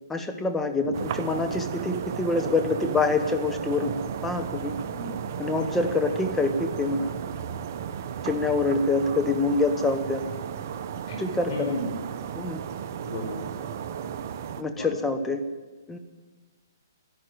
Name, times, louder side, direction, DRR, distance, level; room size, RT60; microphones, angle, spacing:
voice 1, 0.1-3.9 4.2-4.7 5.4-7.1 8.2-10.2 11.2-11.8 12.3-12.6 14.6-15.4 15.9-16.0, left 3 dB, 10° left, 7 dB, 1.1 m, -26 dB
sound 1, 0.9-14.6, right 8 dB, 45° right, 1.0 m, -34 dB
voice 2, 11.1-12.0 13.0-13.8 14.7-14.9, left 1 dB, 40° left, 2 dB, 4.8 m, -36 dB
13.5 x 11.0 x 9.3 m, 1.3 s
hypercardioid pair, 150°, 2 cm